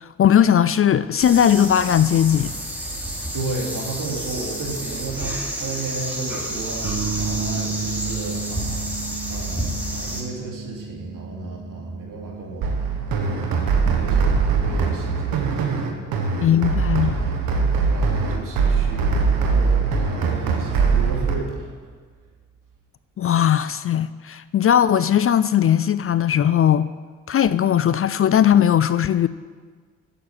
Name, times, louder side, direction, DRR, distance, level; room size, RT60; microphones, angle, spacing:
voice 1, 0.0-2.5 16.4-17.1 23.2-26.9 27.3-29.3, left 9 dB, 40° left, 0.4 m, -18 dB
sound 1, 1.2-10.2, right 1 dB, 5° right, 2.9 m, -30 dB
voice 2, 3.3-9.0 9.3-12.7 13.1-21.7, right 3 dB, 65° right, 2.8 m, -34 dB
sound 2, 6.8-22.8, right 5 dB, 45° right, 1.4 m, -36 dB
sound 3, 12.6-21.3, right 5 dB, 85° right, 1.3 m, -21 dB
8.6 x 7.0 x 8.7 m
cardioid pair, 65°, 34 cm